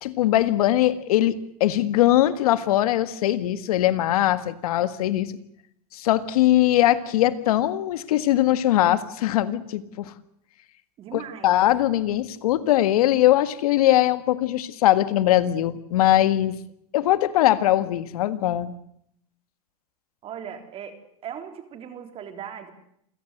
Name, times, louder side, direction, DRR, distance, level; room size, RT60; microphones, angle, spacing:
voice 1, 0.0-5.3 5.9-10.1 11.1-16.6 16.9-18.7, left 13 dB, 80° left, 14 dB, 1.8 m, -21 dB
voice 2, 11.0-11.6 20.2-21.0 21.2-22.7, right 8 dB, 30° right, 8 dB, 3.6 m, -38 dB
27.5 x 16.5 x 8.0 m, 0.72 s
supercardioid pair, 145°, 19 cm